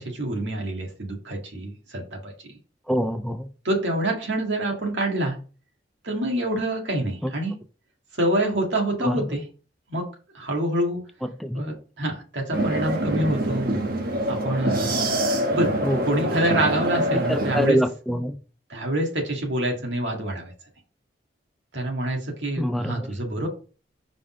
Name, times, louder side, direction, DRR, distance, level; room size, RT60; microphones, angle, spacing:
voice 1, 0.0-2.3 3.6-5.4 6.0-7.6 8.1-9.5 9.9-10.1 10.3-11.0 11.5-13.7 14.3-15.1 15.5-15.7 16.1-17.8 18.7-20.5 21.7-23.5, right 1 dB, 85° right, 1.9 m, -26 dB
voice 2, 2.9-3.4 9.0-9.2 11.4-11.6 15.8-16.0 17.3-18.4 22.6-23.1, equal, ahead, 0.4 m, -25 dB
sound 1, 12.5-17.7, right 1 dB, 55° right, 1.2 m, -25 dB
5.0 x 3.9 x 4.9 m
head